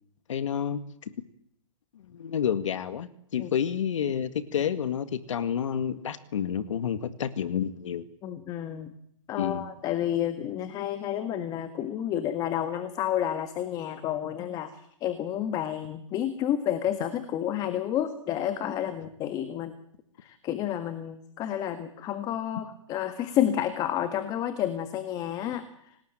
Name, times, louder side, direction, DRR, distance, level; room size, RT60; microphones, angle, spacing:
voice 1, 0.3-1.1 2.1-8.1 9.4-9.7, left 8 dB, 70° left, 12 dB, 2.0 m, -29 dB
voice 2, 8.2-8.9 9.3-19.7 20.2-26.0, left 10 dB, 20° left, 10 dB, 1.7 m, -30 dB
27.0 x 19.5 x 9.1 m, 0.72 s
hypercardioid pair, 150°, 17 cm